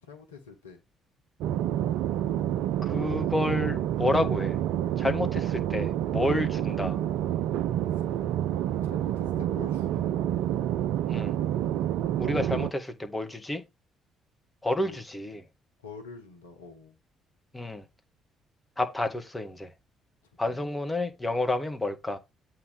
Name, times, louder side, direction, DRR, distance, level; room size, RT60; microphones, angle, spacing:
voice 1, 0.0-0.8 8.0-8.1 8.8-10.2 12.3-12.7 14.8-15.0 15.8-17.0 20.4-20.7, left 4 dB, 85° left, 1.1 m, -47 dB
sound 1, 1.4-12.7, right 11 dB, 65° right, 0.4 m, -28 dB
voice 2, 2.8-4.6 5.0-7.0 11.1-11.3 12.2-13.6 14.6-15.4 17.5-17.8 18.8-19.7 20.4-22.2, left 1 dB, 15° left, 1.9 m, -29 dB
8.3 x 3.8 x 5.2 m
figure-of-eight pair, 45°, 0 cm